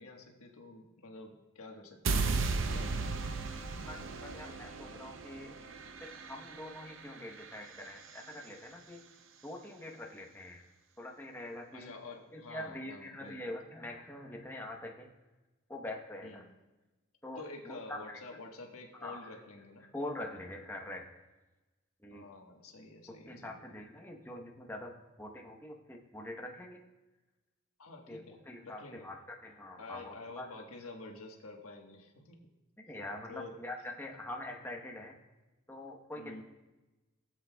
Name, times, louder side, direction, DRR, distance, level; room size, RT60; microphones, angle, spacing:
voice 1, 0.0-2.2 2.6-2.9 11.7-13.4 16.2-16.5 17.3-19.9 22.1-23.6 27.8-29.1 29.8-32.4 33.3-33.5 36.1-36.4, left 3 dB, 90° left, 2 dB, 1.4 m, -49 dB
sound 1, 2.1-8.2, right 4 dB, 60° right, 0.6 m, -36 dB
voice 2, 3.9-5.5 6.0-9.0 9.4-10.6 11.0-11.9 12.3-15.1 15.7-16.4 17.2-18.2 19.0-19.3 19.9-21.1 22.0-22.3 23.3-26.8 28.1-30.5 32.9-35.2 35.7-36.4, left 1 dB, 10° left, 1 dB, 1.0 m, -44 dB
21.0 x 7.8 x 2.3 m, 1.1 s
head